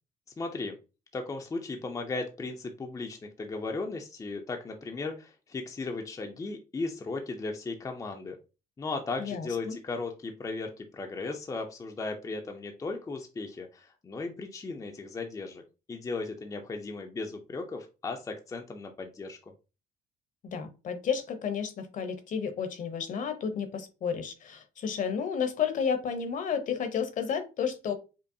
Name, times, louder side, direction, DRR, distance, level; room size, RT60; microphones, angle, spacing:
voice 1, 0.4-0.8 1.1-8.4 8.8-15.6 15.9-19.4, left 3 dB, 20° left, 3 dB, 0.5 m, -36 dB
voice 2, 9.2-9.8 20.4-27.9, left 7 dB, 50° left, 8 dB, 0.8 m, -32 dB
5.2 x 2.0 x 2.6 m, 0.31 s
cardioid pair, 110°, 17 cm